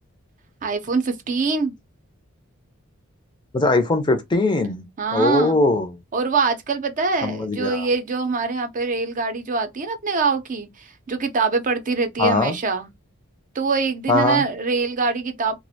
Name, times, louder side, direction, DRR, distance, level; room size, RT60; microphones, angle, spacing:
voice 1, 0.6-1.8 5.0-5.6 6.1-12.9 13.5-15.6, right 4 dB, 40° right, 0.5 m, -24 dB
voice 2, 3.5-4.8 5.1-5.9 7.2-7.9 12.2-12.6 14.1-14.4, left 2 dB, 20° left, 0.5 m, -20 dB
2.4 x 2.1 x 2.6 m
head